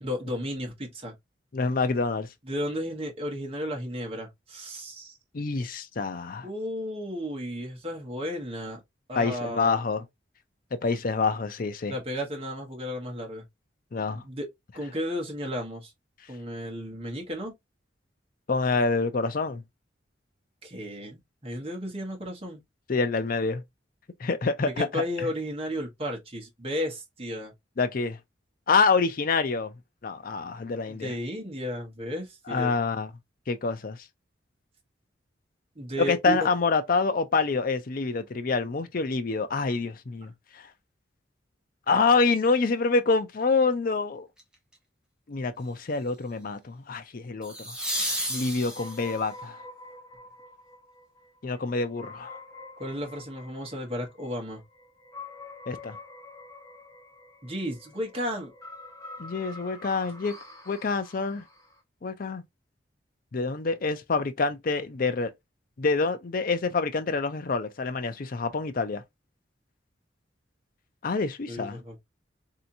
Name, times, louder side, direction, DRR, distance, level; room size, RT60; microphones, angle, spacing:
voice 1, 0.0-1.1 2.4-5.2 6.4-8.8 9.1-9.8 11.9-13.4 14.1-14.5 14.7-15.9 16.3-17.5 20.6-22.6 24.6-27.5 30.9-32.7 35.7-36.4 40.2-40.3 52.8-54.6 57.4-58.5 71.5-72.0, equal, 30° right, 1.2 m, -33 dB
voice 2, 1.5-2.3 5.3-6.5 9.2-10.0 10.7-11.9 13.9-14.2 18.5-19.6 22.9-23.6 24.2-25.3 27.8-28.2 28.7-29.7 30.0-31.1 32.5-33.1 33.5-34.0 36.0-40.7 41.9-44.3 45.3-47.7 48.3-49.6 51.4-52.4 55.7-56.0 59.2-60.4 60.7-61.4 62.0-62.4 63.3-65.3 65.8-69.0 71.0-71.8, left 4 dB, 50° left, 0.5 m, -27 dB
sound 1, 44.4-44.7 47.4-49.3 52.2-52.3, right 1 dB, 5° right, 0.9 m, -32 dB
sound 2, 48.7-61.8, left 2 dB, 15° left, 1.1 m, -47 dB
3.4 x 2.8 x 2.6 m
head